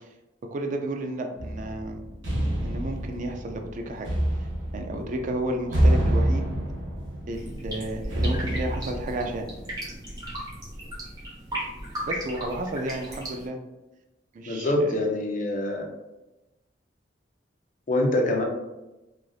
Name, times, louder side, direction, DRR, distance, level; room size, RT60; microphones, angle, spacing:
voice 1, 0.5-2.0 2.6-4.1 4.7-6.5 7.3-9.5 12.1-13.6 14.3-15.0, right 1 dB, 45° right, 4 dB, 0.4 m, -32 dB
sound 1, 1.4-10.0, right 1 dB, 80° right, 0.7 m, -27 dB
sound 2, 7.3-13.5, right 1 dB, 20° right, 0.9 m, -36 dB
voice 2, 14.5-15.9 17.9-18.4, left 1 dB, 45° left, 1 dB, 0.5 m, -24 dB
3.2 x 2.4 x 2.3 m, 1.0 s
head